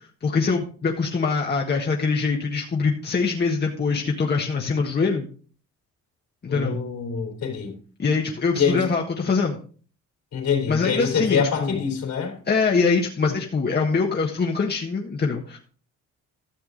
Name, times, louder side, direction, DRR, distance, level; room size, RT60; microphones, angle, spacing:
voice 1, 0.2-5.3 6.4-6.8 8.0-9.6 10.7-11.9 12.5-15.6, left 4 dB, 35° left, 1.5 m, -23 dB
voice 2, 6.5-7.8 8.6-8.9 10.3-12.4, left 6 dB, 65° left, 3.6 m, -25 dB
13.0 x 6.9 x 3.9 m
cardioid pair, 90°, 30 cm